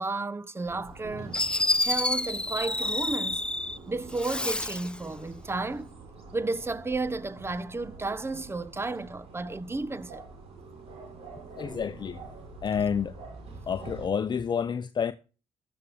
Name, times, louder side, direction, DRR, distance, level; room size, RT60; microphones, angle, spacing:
voice 1, 0.0-1.3 1.8-3.4 3.9-5.9 6.3-10.2, right 3 dB, 20° right, 0.9 m, -32 dB
sound 1, 0.6-14.1, right 3 dB, 65° right, 4.5 m, -46 dB
Fireworks, 0.9-1.0 1.3-3.8 4.1-5.0, left 1 dB, 10° left, 0.6 m, -28 dB
voice 2, 11.6-12.2 12.6-13.1 13.7-15.1, left 7 dB, 40° left, 0.8 m, -29 dB
13.0 x 12.5 x 3.6 m
hypercardioid pair, 55°, 11 cm